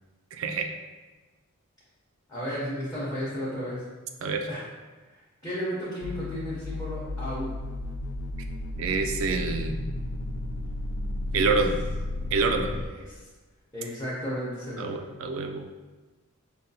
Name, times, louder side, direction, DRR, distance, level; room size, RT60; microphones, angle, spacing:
voice 1, 0.3-0.7 4.2-4.5 8.8-9.8 11.3-11.8 12.3-12.7 14.8-15.7, right 4 dB, 65° right, 5 dB, 0.4 m, -27 dB
voice 2, 2.3-3.8 4.5-4.6 5.1-7.5 11.3-11.5 12.7-13.2 13.7-15.0, equal, 15° left, -9 dB, 0.7 m, -34 dB
sound 1, 6.0-12.9, left 1 dB, 55° left, 0.3 m, -33 dB
5.5 x 2.3 x 2.7 m, 1.3 s
head